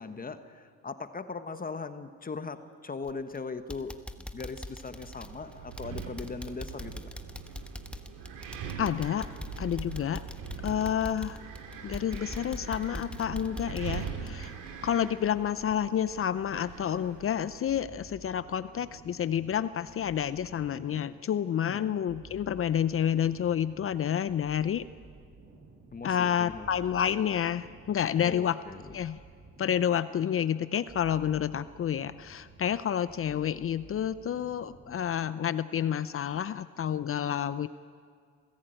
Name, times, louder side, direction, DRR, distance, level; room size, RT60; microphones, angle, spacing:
voice 1, 0.0-7.1 21.7-22.0 25.9-26.7 28.2-29.0, left 4 dB, 30° left, 10 dB, 1.2 m, -39 dB
sound 1, 3.0-3.4 3.7-15.3 15.6-15.7 16.2-16.3, left 1 dB, 5° left, 1.2 m, -42 dB
Wind, 5.0-17.6, right 7 dB, 85° right, 2.4 m, -42 dB
voice 2, 8.8-9.3 9.6-10.2 10.6-11.4 11.8-14.5 14.8-24.9 26.0-28.6 28.9-29.2 29.6-37.7, left 9 dB, 45° left, 15 dB, 0.6 m, -29 dB
sound 2, 17.7-35.3, right 3 dB, 45° right, 6.2 m, -53 dB
27.5 x 16.0 x 9.0 m, 2.1 s
cardioid pair, 90°, 30 cm